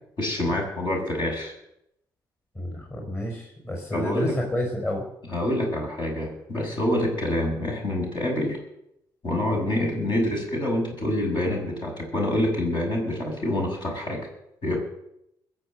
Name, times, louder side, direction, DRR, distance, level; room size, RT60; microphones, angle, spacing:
voice 1, 0.2-1.5 3.9-4.3 5.3-8.6 9.2-14.3 14.6-14.8, left 1 dB, 50° left, -1 dB, 6.8 m, -26 dB
voice 2, 2.5-5.0, left 1 dB, 25° left, 1 dB, 5.5 m, -29 dB
21.5 x 7.2 x 7.9 m, 0.80 s
hypercardioid pair, 55°, 10 cm